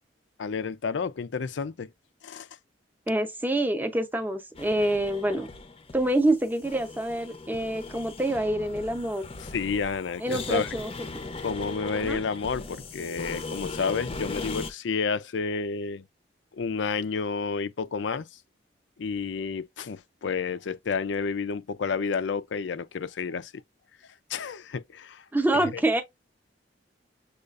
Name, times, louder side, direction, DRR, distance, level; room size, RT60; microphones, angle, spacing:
voice 1, 0.4-1.9 2.2-2.5 9.4-10.7 11.4-16.1 16.5-18.3 19.0-23.5 24.3-25.2 25.5-25.8, left 5 dB, 75° left, 0.5 m, -30 dB
voice 2, 3.1-5.5 5.9-9.2 10.2-10.9 11.2-11.3 12.0-12.2 25.3-26.0, right 1 dB, 10° right, 0.7 m, -26 dB
sound 1, 4.5-14.7, left 3 dB, 30° left, 0.6 m, -39 dB
6.5 x 2.4 x 2.4 m
head